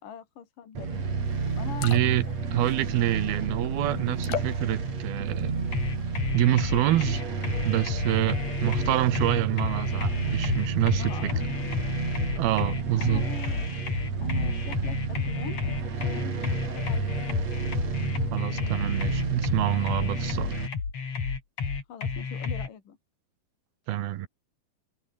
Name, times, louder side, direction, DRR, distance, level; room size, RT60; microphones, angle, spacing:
voice 1, 0.0-1.0 1.6-2.7 3.9-4.2 11.0-11.5 13.0-13.7 14.2-17.1 21.9-23.0, left 8 dB, 65° left, 4.4 m, -43 dB
sound 1, 0.8-20.7, right 4 dB, 45° right, 5.6 m, -31 dB
sound 2, 1.2-1.3 1.6-2.3 2.6-3.2 4.2-4.7 5.2-5.7 6.1-6.3, left 10 dB, 85° left, 4.2 m, -35 dB
voice 2, 1.8-2.2 2.5-5.5 6.3-7.3 7.6-11.1 12.4-13.2 18.3-20.6 23.9-24.3, right 13 dB, 85° right, 3.3 m, -26 dB
sound 3, 5.7-22.7, left 5 dB, 45° left, 4.8 m, -31 dB
omnidirectional pair, 4.3 m